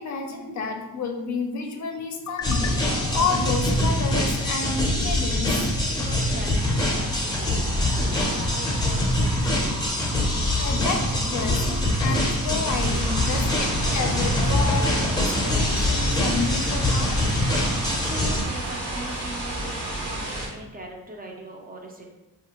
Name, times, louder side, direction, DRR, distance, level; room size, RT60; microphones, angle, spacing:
voice 1, 0.0-5.7 10.6-17.2, left 4 dB, 55° left, 3 dB, 0.5 m, -30 dB
sound 1, 2.4-18.4, left 1 dB, 15° left, 0.7 m, -24 dB
voice 2, 5.9-10.1 17.6-22.2, right 2 dB, 25° right, 0 dB, 0.5 m, -41 dB
sound 2, 6.6-20.3, right 2 dB, 85° right, 0.6 m, -40 dB
sound 3, 12.6-20.5, right 1 dB, 65° right, 1.0 m, -31 dB
3.4 x 2.5 x 2.9 m, 1.0 s
cardioid pair, 115°, 35 cm